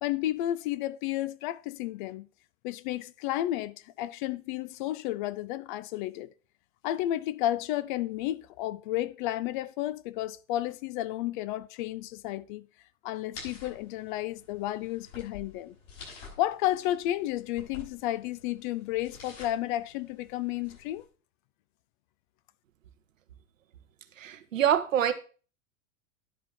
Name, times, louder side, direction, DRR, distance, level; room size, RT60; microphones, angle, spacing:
voice 1, 0.0-2.3 2.6-6.3 6.8-12.7 13.0-15.7 16.4-21.0, left 14 dB, 40° left, 0.5 m, -32 dB
sound 1, 13.3-21.1, left 4 dB, 65° left, 6.3 m, -50 dB
voice 2, 24.2-25.1, right 10 dB, 75° right, 1.1 m, -25 dB
10.0 x 5.1 x 5.9 m
figure-of-eight pair, 95°, 40 cm